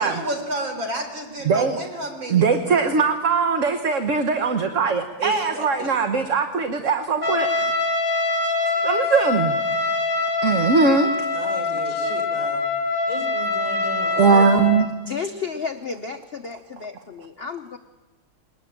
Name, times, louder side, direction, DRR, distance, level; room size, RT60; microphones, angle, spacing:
voice 1, 0.0-2.8 5.2-5.9 11.3-12.6, right 2 dB, 70° right, 4 dB, 5.0 m, -32 dB
voice 2, 1.4-1.8 2.3-7.5 8.8-9.5 10.4-11.1 11.8-12.0 14.2-14.9, right 5 dB, 45° right, 6 dB, 1.3 m, -20 dB
Trumpet, 7.2-14.9, left 3 dB, 5° right, 3.9 m, -24 dB
voice 3, 13.1-14.5, left 1 dB, 15° left, 2 dB, 4.5 m, -33 dB
voice 4, 15.1-17.8, left 5 dB, 45° left, 6 dB, 0.8 m, -33 dB
22.5 x 20.0 x 8.8 m, 1.2 s
omnidirectional pair, 2.2 m